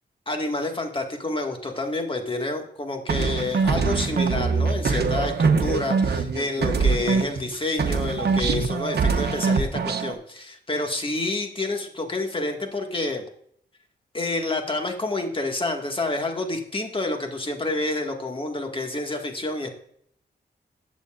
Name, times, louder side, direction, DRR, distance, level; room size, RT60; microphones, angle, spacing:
voice 1, 0.3-13.2 14.1-19.7, left 2 dB, 30° left, 3 dB, 2.0 m, -28 dB
sound 1, 3.1-7.5 7.8-10.1, right 5 dB, 65° right, 1.1 m, -23 dB
14.5 x 8.2 x 2.6 m, 0.66 s
cardioid pair, 80°, 18 cm